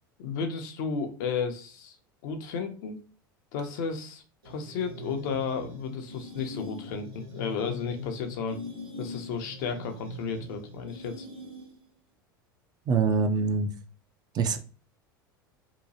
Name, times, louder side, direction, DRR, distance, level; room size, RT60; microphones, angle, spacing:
voice 1, 0.2-2.0 2.2-3.0 3.5-8.6 9.0-11.3, left 5 dB, 60° left, 5 dB, 0.6 m, -33 dB
sound 1, 4.4-11.9, left 1 dB, 85° right, 1.3 m, -42 dB
voice 2, 12.9-13.7 14.3-14.6, right 5 dB, 35° right, 6 dB, 0.5 m, -24 dB
2.8 x 2.2 x 2.7 m, 0.38 s
hypercardioid pair, 80°, 12 cm